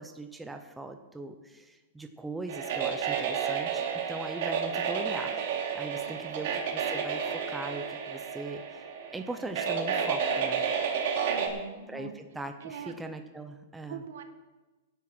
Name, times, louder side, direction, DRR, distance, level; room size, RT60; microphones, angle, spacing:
voice 1, 0.0-5.4 5.7-10.6 11.9-14.0, right 2 dB, 5° right, 6 dB, 0.7 m, -40 dB
sound 1, 2.5-11.5, right 7 dB, 55° right, 2.9 m, -31 dB
voice 2, 11.3-12.1 12.6-13.0 13.9-14.2, right 8 dB, 75° right, 7 dB, 1.7 m, -42 dB
17.0 x 10.5 x 4.4 m, 1.2 s
supercardioid pair, 165°, 0 cm